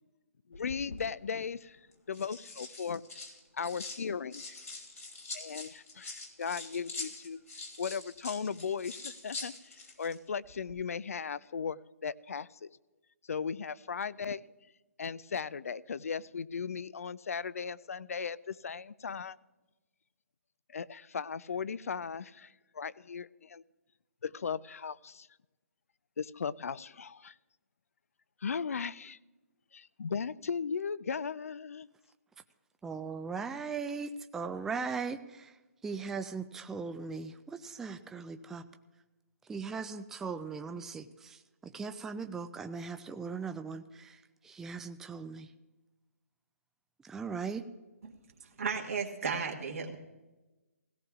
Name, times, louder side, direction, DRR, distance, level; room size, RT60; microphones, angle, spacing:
sound 1, 0.5-1.0 1.9-4.0 4.3-10.2 10.5-10.7, left 3 dB, 85° left, 3.1 m, -44 dB
voice 1, 0.5-1.8 2.1-3.0 3.5-4.6 5.3-7.4 7.8-12.7 13.3-14.4 15.0-19.4 20.7-23.6 24.2-25.3 26.2-27.3 28.4-29.2 29.7-31.9, left 6 dB, 70° left, 0.5 m, -37 dB
voice 2, 32.8-35.2 35.8-38.6 39.5-41.0 41.7-43.8 44.5-45.5 47.1-47.6, right 5 dB, 5° right, 0.3 m, -38 dB
voice 3, 48.6-50.0, right 5 dB, 65° right, 1.5 m, -34 dB
17.0 x 16.5 x 2.4 m
figure-of-eight pair, 145°, 8 cm